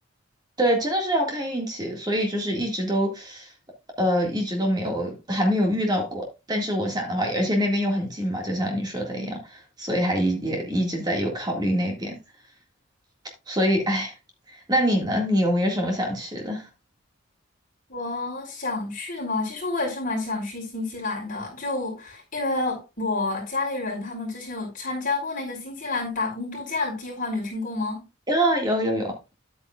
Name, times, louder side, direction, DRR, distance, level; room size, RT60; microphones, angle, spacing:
voice 1, 0.6-3.5 4.0-12.2 13.5-14.1 14.5-16.7 28.3-29.3, equal, 20° right, 1.9 m, -25 dB
voice 2, 17.9-28.0, left 3 dB, 40° left, 4.3 m, -29 dB
10.5 x 8.8 x 2.4 m
head